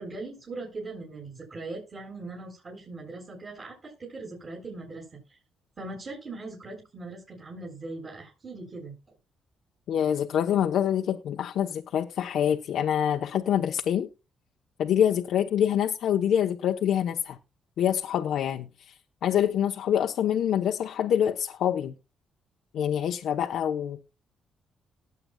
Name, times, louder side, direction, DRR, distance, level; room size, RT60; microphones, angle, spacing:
voice 1, 0.0-5.4 5.8-8.9, right 3 dB, 40° right, 7.0 m, -40 dB
voice 2, 9.9-14.1 14.8-17.4 17.8-21.9 22.7-24.0, left 9 dB, 75° left, 1.0 m, -26 dB
19.5 x 7.8 x 2.4 m
cardioid pair, 90°, 0 cm